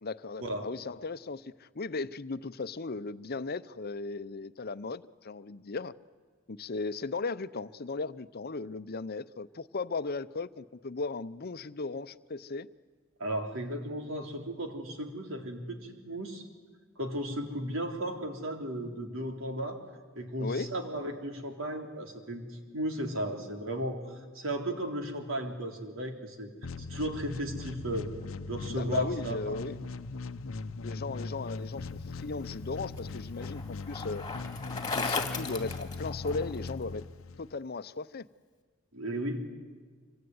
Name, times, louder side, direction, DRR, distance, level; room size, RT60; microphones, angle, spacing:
voice 1, 0.0-5.9 6.5-12.7 20.4-20.7 28.7-29.8 30.8-34.2 34.9-37.0 37.4-38.3, left 3 dB, 50° left, 13 dB, 0.8 m, -36 dB
voice 2, 13.2-16.5 17.0-19.8 20.2-26.5 26.8-28.1 28.5-29.9 38.9-39.5, right 1 dB, 80° right, 4 dB, 3.6 m, -35 dB
sound 1, 26.6-37.6, left 3 dB, 90° left, 0.8 m, -40 dB
Bicycle, 32.3-36.7, left 4 dB, 20° left, 2.4 m, -37 dB
26.0 x 24.0 x 9.6 m, 1.5 s
head